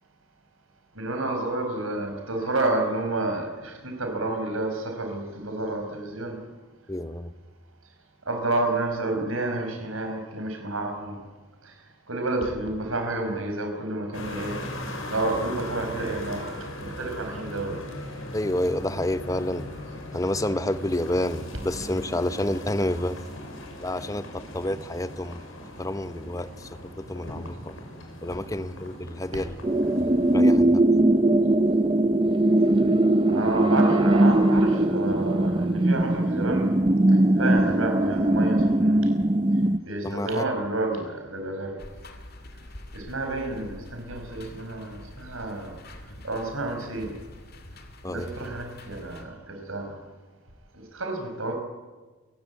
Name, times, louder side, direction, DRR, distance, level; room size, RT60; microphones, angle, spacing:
voice 1, 1.0-6.4 8.3-11.2 12.1-14.6 15.1-16.4 16.8-17.8 33.3-36.8 37.4-39.0 39.8-41.8 42.9-45.8 46.2-47.1 48.1-49.9 50.9-51.5, right 2 dB, 75° right, 4 dB, 5.5 m, -30 dB
voice 2, 6.9-7.3 18.3-19.7 20.1-23.2 23.8-25.4 25.8-26.7 27.1-27.7 28.2-29.6 30.0-30.8 40.0-40.5 48.0-48.3, left 1 dB, 15° left, 12 dB, 0.9 m, -29 dB
sound 1, 14.1-30.4, left 1 dB, 70° left, 5.8 m, -39 dB
sound 2, 29.6-39.8, right 1 dB, 25° right, 0.7 m, -20 dB
sound 3, 41.8-49.2, left 1 dB, 45° left, 2.5 m, -45 dB
28.0 x 16.0 x 9.6 m, 1.3 s
head